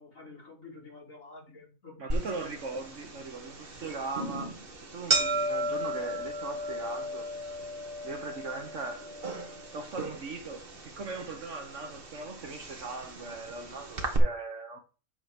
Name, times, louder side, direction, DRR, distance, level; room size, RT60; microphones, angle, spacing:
voice 1, 0.0-2.3, left 3 dB, 60° left, 4.4 m, -49 dB
voice 2, 2.0-4.5 4.8-7.3 8.0-9.1 9.7-14.8, right 3 dB, 60° right, 1.4 m, -39 dB
sound 1, 2.1-14.2, right 1 dB, 40° right, 1.5 m, -35 dB
8.9 x 3.9 x 5.1 m
omnidirectional pair, 1.5 m